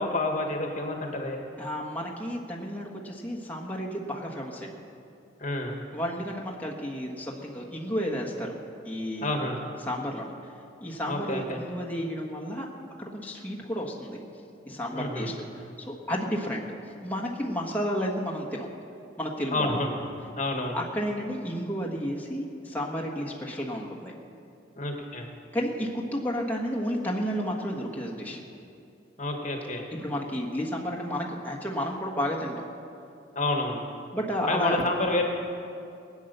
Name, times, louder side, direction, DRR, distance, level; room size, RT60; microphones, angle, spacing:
voice 1, 0.0-1.4 5.4-5.8 9.2-9.6 11.1-11.6 14.9-15.3 19.5-19.9 20.4-20.8 24.8-25.3 29.2-29.9 33.3-33.8 34.5-35.2, left 2 dB, 40° left, 2 dB, 1.5 m, -29 dB
voice 2, 1.6-4.7 5.9-8.5 8.8-9.3 9.8-10.3 10.8-12.7 13.0-14.2 14.7-16.6 17.0-18.7 19.2-19.8 20.7-24.1 25.5-28.4 30.0-32.6 34.1-34.8, equal, 10° left, -3 dB, 1.5 m, -32 dB
20.5 x 9.4 x 6.7 m, 2.6 s
head